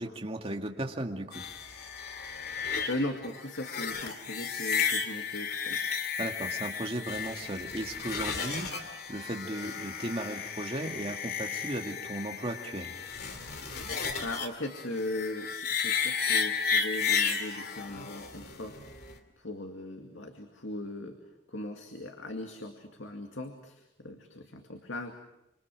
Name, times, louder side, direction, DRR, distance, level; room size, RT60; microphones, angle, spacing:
voice 1, 0.0-1.5 6.2-12.9, right 1 dB, 30° right, 2 dB, 2.1 m, -36 dB
sound 1, 1.3-19.2, left 6 dB, 55° left, 2.8 m, -33 dB
voice 2, 2.9-5.8 14.2-18.8 19.4-21.2 21.5-25.1, left 1 dB, 75° left, 4 dB, 2.3 m, -38 dB
27.5 x 25.5 x 6.2 m, 0.85 s
head